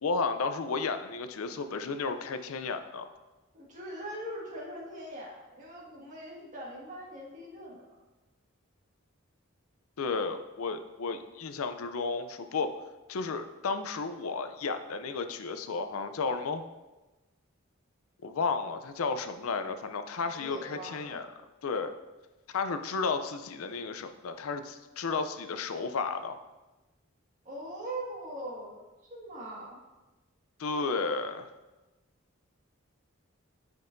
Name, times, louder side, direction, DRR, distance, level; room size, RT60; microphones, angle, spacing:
voice 1, 0.0-3.1 10.0-12.7 13.1-16.6 18.2-21.3 21.6-21.9 22.5-26.4 30.6-31.5, left 4 dB, 90° left, 9 dB, 0.5 m, -33 dB
voice 2, 3.5-7.8 20.3-21.2 27.4-28.8 29.1-29.8, right 1 dB, 40° right, -4 dB, 1.8 m, -41 dB
10.0 x 5.4 x 2.6 m, 1.1 s
head